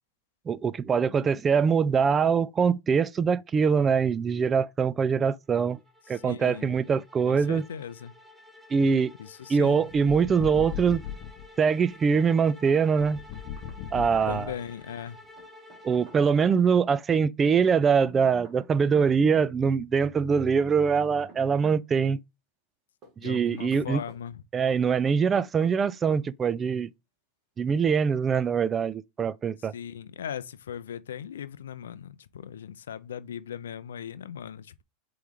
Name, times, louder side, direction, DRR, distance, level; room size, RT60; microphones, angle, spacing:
voice 1, 0.5-5.8 6.1-7.6 8.7-9.1 9.5-11.0 11.6-13.2 13.9-14.5 15.8-22.2 23.2-24.0 24.5-26.9 27.6-29.7, right 6 dB, 25° right, 0.3 m, -23 dB
sound 1, 5.5-16.8, left 1 dB, ahead, 1.0 m, -52 dB
voice 2, 6.1-6.8 7.3-8.1 9.2-9.9 14.3-15.2 23.2-24.4 29.6-34.8, left 8 dB, 85° left, 0.4 m, -38 dB
sound 2, 9.9-11.5 13.0-14.8, left 9 dB, 55° left, 0.7 m, -38 dB
Knock, 13.0-13.8 14.0-14.1 15.4-16.6 17.9-19.1 20.6-21.8 23.0-24.2 25.0-25.8 26.1-26.3, right 4 dB, 40° right, 1.8 m, -51 dB
4.7 x 3.1 x 3.6 m
hypercardioid pair, 105°, 0 cm